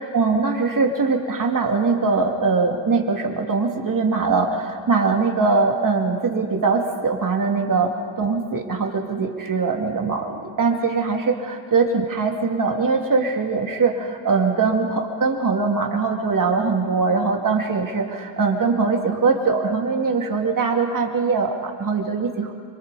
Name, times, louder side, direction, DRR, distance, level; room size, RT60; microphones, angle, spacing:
voice 1, 0.0-22.5, right 4 dB, 40° right, 2 dB, 2.4 m, -22 dB
29.0 x 25.0 x 4.1 m, 2.1 s
cardioid pair, 110°, 47 cm